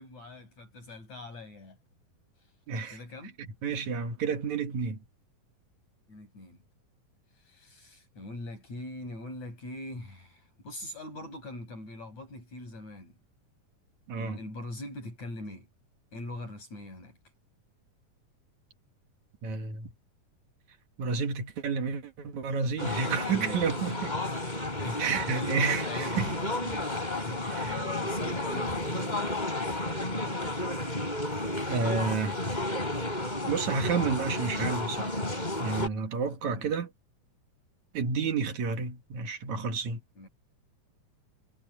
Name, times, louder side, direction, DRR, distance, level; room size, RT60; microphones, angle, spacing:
voice 1, 0.0-1.8 2.9-3.4 6.1-6.6 7.4-13.1 14.2-15.7 16.1-17.2 23.3-23.7 24.8-26.9 27.2-30.6 35.8-36.8 40.2-40.3, left 2 dB, 60° left, 8.3 m, -42 dB
voice 2, 2.7-3.0 3.4-5.0 14.1-14.4 19.4-19.9 21.0-24.1 25.0-26.3 27.4-27.7 31.7-32.4 33.4-35.2 35.6-36.9 37.9-40.0, right 5 dB, 65° right, 3.1 m, -30 dB
sound 1, 22.8-35.9, left 1 dB, 15° left, 4.4 m, -32 dB
omnidirectional pair, 3.7 m